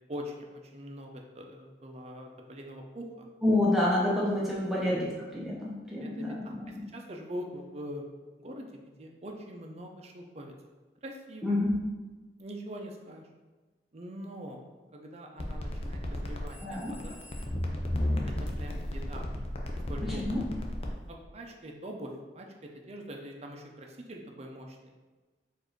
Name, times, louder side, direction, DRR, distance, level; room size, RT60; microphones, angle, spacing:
voice 1, 0.1-3.3 4.8-4.9 6.0-8.0 8.4-10.5 11.0-11.6 12.4-13.3 13.9-14.6 14.9-17.2 18.3-19.3 19.9-20.2 21.1-24.9, equal, 35° right, 2 dB, 0.6 m, -43 dB
voice 2, 3.4-6.9 11.4-11.7 16.6-17.0 20.0-20.5, left 1 dB, ahead, -6 dB, 0.8 m, -28 dB
sound 1, 15.4-20.9, left 1 dB, 35° left, 0.5 m, -33 dB
4.5 x 2.6 x 4.5 m, 1.3 s
head